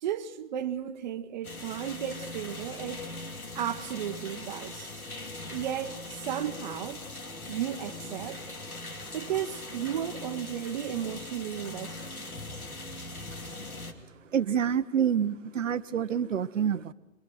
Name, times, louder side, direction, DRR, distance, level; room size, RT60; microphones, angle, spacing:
voice 1, 0.0-3.1 3.5-4.9 5.5-7.0 7.5-8.4 9.1-12.1, right 10 dB, 35° right, 1.0 m, -34 dB
sound 1, 1.4-13.9, left 2 dB, 85° left, 2.5 m, -41 dB
voice 2, 14.3-16.9, right 8 dB, 60° right, 0.9 m, -27 dB
25.0 x 22.5 x 6.2 m
figure-of-eight pair, 130°, 42 cm